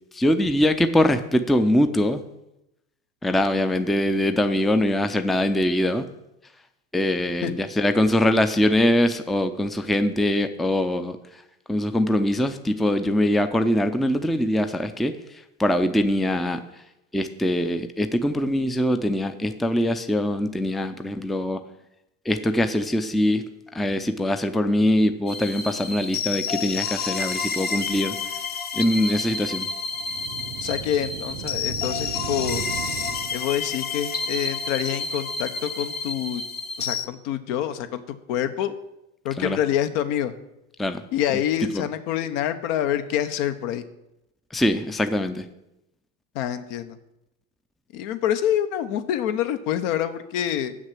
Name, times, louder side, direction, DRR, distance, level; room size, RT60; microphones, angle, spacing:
voice 1, 0.1-2.2 3.2-6.1 6.9-11.2 11.7-15.2 15.6-16.6 17.1-21.6 22.3-28.2 28.7-29.7 39.4-39.6 40.8-41.0 41.7-41.8 44.5-45.4, left 1 dB, ahead, 9 dB, 0.5 m, -22 dB
sound 1, 25.3-37.1, left 5 dB, 25° left, 0.8 m, -30 dB
sound 2, 29.9-33.8, right 11 dB, 55° right, 0.7 m, -36 dB
voice 2, 30.6-32.6 33.3-36.4 36.8-38.0 38.3-38.7 39.2-40.3 41.1-43.8 46.3-47.0 47.9-50.7, left 10 dB, 65° left, 10 dB, 1.1 m, -26 dB
7.4 x 6.4 x 7.5 m, 0.87 s
hypercardioid pair, 90°, 41 cm